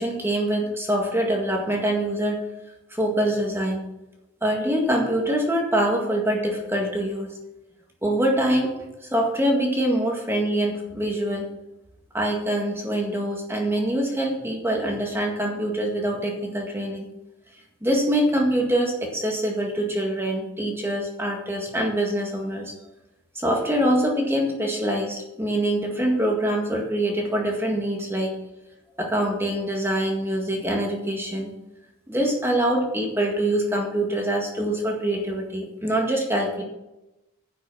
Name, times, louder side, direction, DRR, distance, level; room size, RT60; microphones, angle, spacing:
voice 1, 0.0-2.4 2.9-3.8 4.4-7.3 8.0-8.7 9.1-11.5 12.1-17.1 17.8-22.7 23.4-28.3 29.0-31.5 32.1-36.6, right 1 dB, 10° right, 0 dB, 1.9 m, -24 dB
11.0 x 6.2 x 7.4 m, 0.95 s
head